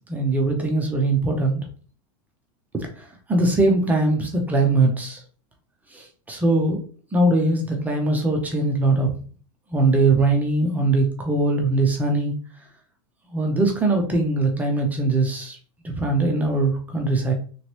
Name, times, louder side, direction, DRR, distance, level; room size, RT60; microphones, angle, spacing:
voice 1, 0.1-1.6 2.7-2.9 3.3-5.2 6.3-6.8 7.1-9.1 9.7-12.3 13.3-15.6 15.9-17.3, right 2 dB, 10° right, 2 dB, 0.3 m, -21 dB
3.0 x 2.9 x 2.9 m, 0.41 s
supercardioid pair, 165°, 18 cm